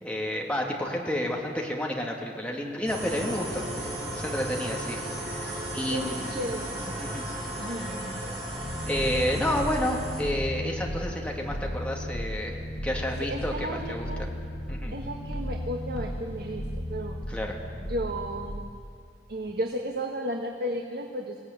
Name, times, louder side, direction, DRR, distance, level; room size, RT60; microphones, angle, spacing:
voice 1, 0.0-5.0 5.3-6.4 7.0-7.2 7.7-7.9 8.9-14.0 14.7-14.9 17.3-17.6, left 1 dB, 5° left, -1 dB, 2.8 m, -30 dB
sound 1, 2.9-10.2, right 1 dB, 35° right, 6.9 m, -35 dB
voice 2, 5.9-7.0 7.6-8.3 13.2-14.3 14.9-17.2 17.8-18.6 19.3-21.4, right 1 dB, 60° right, 2 dB, 1.6 m, -34 dB
sound 2, 8.6-18.6, equal, 60° left, 2.7 m, -35 dB
22.5 x 17.0 x 9.6 m, 2.3 s
head